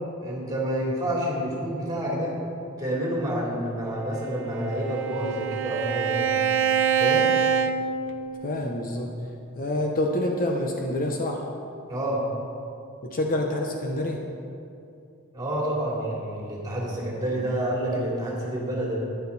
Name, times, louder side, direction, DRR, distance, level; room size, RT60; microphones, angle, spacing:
voice 1, 0.2-2.3 2.8-6.3 7.0-7.2 11.9-12.2 15.3-19.0, right 1 dB, 20° right, -5 dB, 3.1 m, -28 dB
Bowed string instrument, 4.2-8.6, right 7 dB, 65° right, 0.6 m, -25 dB
voice 2, 8.4-9.1 9.5-11.4 13.0-14.2, left 1 dB, 40° left, 1 dB, 1.0 m, -27 dB
13.0 x 10.5 x 4.2 m, 2.5 s
head